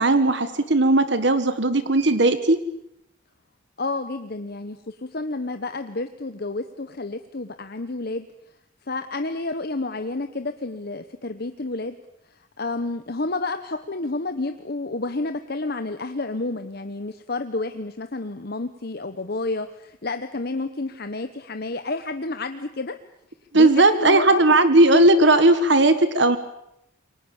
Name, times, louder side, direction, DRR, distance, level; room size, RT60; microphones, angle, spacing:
voice 1, 0.0-2.6 23.5-26.4, right 2 dB, 60° right, 11 dB, 1.5 m, -17 dB
voice 2, 3.8-8.3 8.9-12.0 12.3-23.0 23.5-24.4, left 2 dB, 50° left, 8 dB, 1.1 m, -30 dB
28.0 x 24.0 x 7.2 m, 0.81 s
head